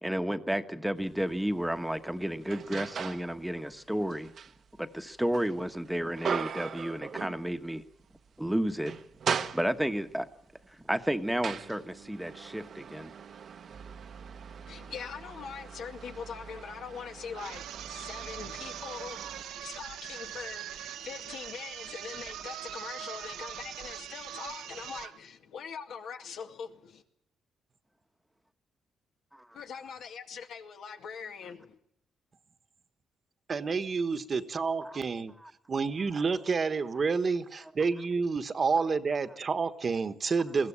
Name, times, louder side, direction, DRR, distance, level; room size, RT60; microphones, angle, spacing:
voice 1, 0.0-4.3 4.8-7.8 8.4-8.9 9.5-10.3 10.7-13.1 19.2-19.3 34.8-35.0 35.4-35.5, right 1 dB, 5° right, 1.2 m, -32 dB
sound 1, 1.1-1.2 1.7-3.3 3.7-7.8 8.1-8.3 8.7-10.1 10.8-19.4, right 7 dB, 55° right, 1.1 m, -39 dB
voice 2, 14.7-27.0 29.5-31.8, left 6 dB, 70° left, 2.1 m, -42 dB
sound 2, 17.3-25.2, right 11 dB, 85° right, 1.2 m, -42 dB
voice 3, 33.5-35.3 35.7-40.7, right 4 dB, 40° right, 1.3 m, -29 dB
21.5 x 16.0 x 9.9 m
cardioid pair, 90°, 0 cm